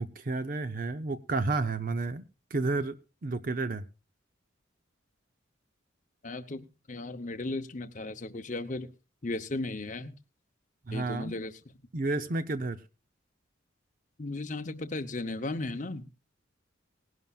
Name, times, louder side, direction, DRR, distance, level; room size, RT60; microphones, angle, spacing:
voice 1, 0.0-2.2 2.5-3.0 3.2-3.8 10.9-11.3 11.9-12.8, right 3 dB, 45° right, 10 dB, 0.7 m, -31 dB
voice 2, 6.2-8.9 9.2-10.1 10.9-11.5 14.2-16.1, left 2 dB, 40° left, 7 dB, 0.8 m, -36 dB
19.5 x 11.0 x 2.4 m, 0.30 s
head